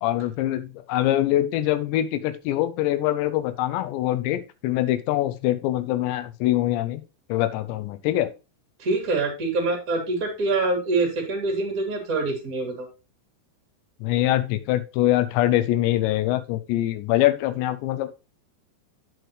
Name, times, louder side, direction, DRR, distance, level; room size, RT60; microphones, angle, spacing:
voice 1, 0.0-7.0 7.3-8.3 14.0-18.1, left 14 dB, 80° left, 12 dB, 2.9 m, -24 dB
voice 2, 8.8-12.9, right 3 dB, 30° right, 0 dB, 1.8 m, -25 dB
9.3 x 6.2 x 3.1 m, 0.29 s
omnidirectional pair, 5.1 m